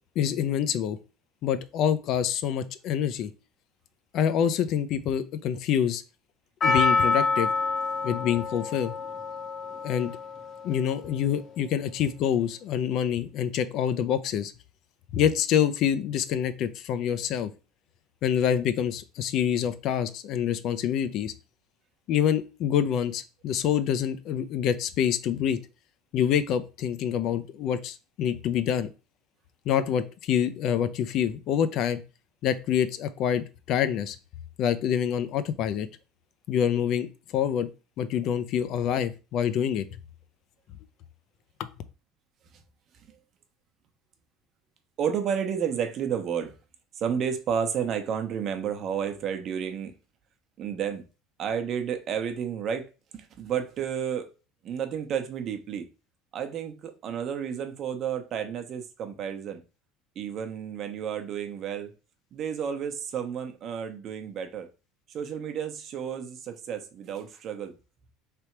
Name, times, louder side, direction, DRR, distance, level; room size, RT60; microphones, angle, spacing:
voice 1, 0.2-1.0 1.4-3.3 4.1-6.0 6.6-7.5 8.0-8.9 9.8-10.1 10.6-14.5 15.1-17.5 18.2-21.3 22.1-25.6 26.1-28.9 29.7-32.0 32.4-34.2 34.6-35.9 36.5-37.7 38.0-39.8 41.6-41.7, left 9 dB, 60° left, 0.5 m, -26 dB
Percussion, 6.6-11.0 11.2-11.3, left 4 dB, 40° left, 0.9 m, -27 dB
voice 2, 45.0-46.5 46.9-49.9 50.6-51.0 51.4-54.3 54.6-55.9 56.3-59.6 60.2-61.9 62.3-64.7 65.1-67.8, right 8 dB, 50° right, 0.9 m, -31 dB
3.4 x 2.8 x 4.5 m
supercardioid pair, 110°, 0 cm